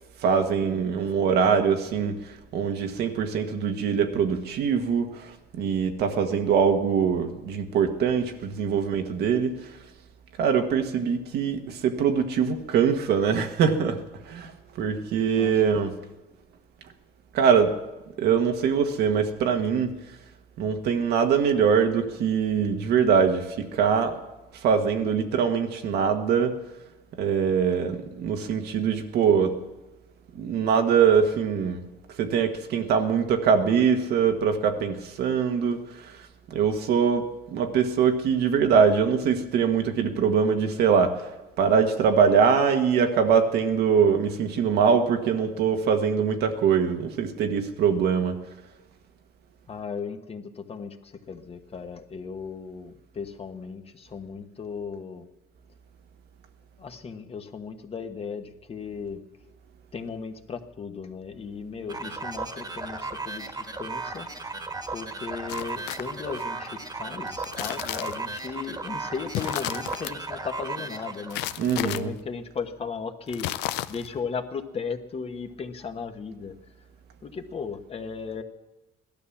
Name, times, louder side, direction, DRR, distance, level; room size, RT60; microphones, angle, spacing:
voice 1, 0.2-9.6 10.4-14.5 14.8-16.0 17.3-17.7 18.2-19.9 20.6-24.2 24.5-26.6 27.2-29.6 30.3-31.8 32.2-36.2 36.5-41.3 41.6-48.4 71.6-72.1, right 6 dB, 70° right, 6 dB, 1.5 m, -23 dB
voice 2, 49.7-55.2 56.8-59.2 59.9-64.3 64.9-76.5 77.2-78.4, left 5 dB, 35° left, 7 dB, 1.2 m, -36 dB
sound 1, 61.9-71.6, right 3 dB, 25° right, 1.6 m, -35 dB
sound 2, 65.5-66.4 67.3-68.4 69.3-70.1 71.3-72.0 73.3-74.2, left 15 dB, 90° left, 0.5 m, -33 dB
16.5 x 12.0 x 7.2 m, 1.1 s
cardioid pair, 110°, 17 cm